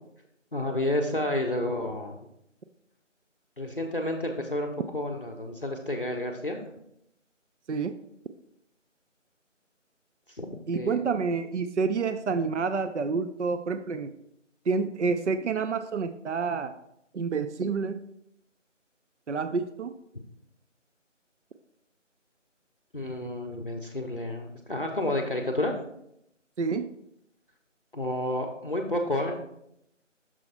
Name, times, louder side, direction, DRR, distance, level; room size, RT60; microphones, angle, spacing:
voice 1, 0.5-2.2 3.6-6.6 10.4-10.5 10.7-11.0 22.9-25.7 27.9-29.4, left 1 dB, 45° left, 3 dB, 0.6 m, -30 dB
voice 2, 10.7-14.1 14.7-16.7 17.1-18.0 19.3-19.9 26.6-26.9, right 5 dB, 65° right, 10 dB, 0.5 m, -28 dB
6.2 x 4.3 x 4.0 m, 0.77 s
figure-of-eight pair, 170°, 38 cm